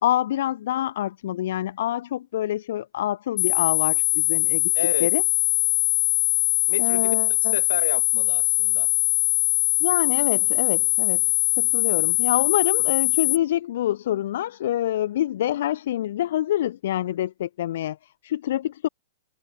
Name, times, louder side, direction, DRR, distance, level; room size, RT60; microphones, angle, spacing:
voice 1, 0.0-4.7 5.0-5.2 6.8-7.5 9.8-11.3 11.6-18.9, left 12 dB, 65° left, 2.3 m, -26 dB
sound 1, 3.4-13.4, left 28 dB, 40° left, 1.0 m, -22 dB
voice 2, 4.7-5.1 6.7-7.2 7.4-8.9, left 7 dB, 85° left, 7.2 m, -31 dB
hypercardioid pair, 125°, 0 cm